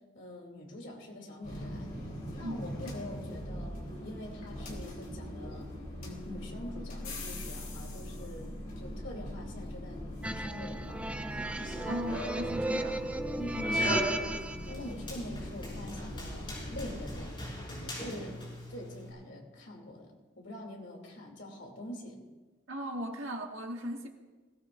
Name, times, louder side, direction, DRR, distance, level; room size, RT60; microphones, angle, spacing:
voice 1, 0.1-1.9 2.4-3.8 4.0-5.7 6.0-11.2 13.4-13.9 14.6-17.5 17.8-18.4 18.7-22.2, left 1 dB, 70° left, 0 dB, 3.0 m, -44 dB
sound 1, 1.4-17.2, left 1 dB, 45° left, 3.5 m, -42 dB
sound 2, 10.2-14.7, right 1 dB, 5° right, 0.4 m, -34 dB
Run, 11.4-19.1, equal, 25° left, 5.9 m, -40 dB
voice 2, 11.9-13.1 22.7-24.1, equal, 90° right, 2 dB, 1.9 m, -37 dB
20.5 x 17.5 x 2.6 m, 1.3 s
head